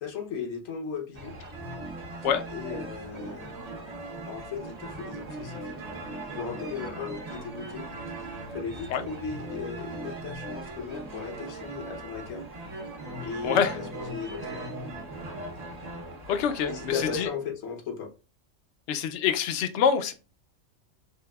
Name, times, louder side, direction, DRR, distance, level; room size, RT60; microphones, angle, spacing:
voice 1, 0.0-1.3 2.5-3.5 4.3-5.8 6.3-7.9 8.5-12.5 13.2-14.6 16.7-18.1, left 6 dB, 85° left, 1.2 m, -36 dB
sound 1, 1.1-17.3, right 2 dB, 35° right, 0.7 m, -39 dB
voice 2, 13.4-13.8 16.3-17.3 18.9-20.1, left 7 dB, 70° left, 0.8 m, -25 dB
4.6 x 2.7 x 2.2 m
omnidirectional pair, 1.3 m